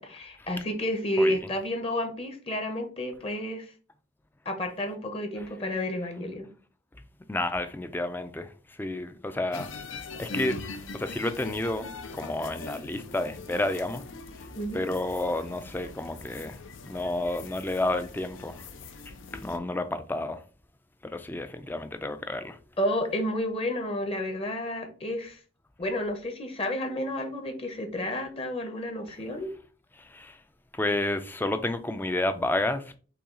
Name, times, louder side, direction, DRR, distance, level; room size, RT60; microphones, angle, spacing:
voice 1, 0.0-3.7 4.4-6.5 14.5-14.8 22.8-25.4 25.8-29.5, left 1 dB, 30° left, 0.8 m, -30 dB
voice 2, 7.3-9.7 10.2-11.9 12.1-14.0 14.4-14.5 14.7-16.6 16.9-18.7 19.1-20.4 21.0-22.6 29.9-30.4 30.7-33.0, left 2 dB, 10° left, 0.3 m, -31 dB
sound 1, 9.5-19.6, left 3 dB, 80° left, 0.6 m, -42 dB
5.7 x 2.3 x 3.7 m
head